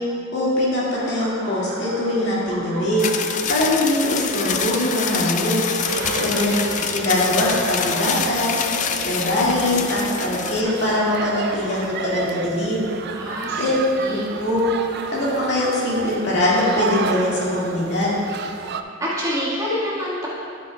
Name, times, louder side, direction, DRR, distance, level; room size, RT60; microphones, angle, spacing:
voice 1, 0.3-5.6 5.9-6.5 6.9-8.6 9.0-12.8 13.6-13.8 14.1-14.7 15.1-18.2, left 1 dB, 60° left, -7 dB, 2.1 m, -22 dB
Laughter, 1.0-11.9, right 1 dB, 80° right, 1.5 m, -37 dB
sound 1, 3.0-10.6, left 7 dB, 40° left, 0.4 m, -26 dB
sound 2, 5.8-18.8, right 5 dB, 55° right, 0.4 m, -32 dB
voice 2, 5.9-6.2 6.7-6.8 13.1-13.7 14.0-14.3 18.8-20.3, equal, 20° right, -8 dB, 1.7 m, -27 dB
11.0 x 8.8 x 2.3 m, 2.5 s
head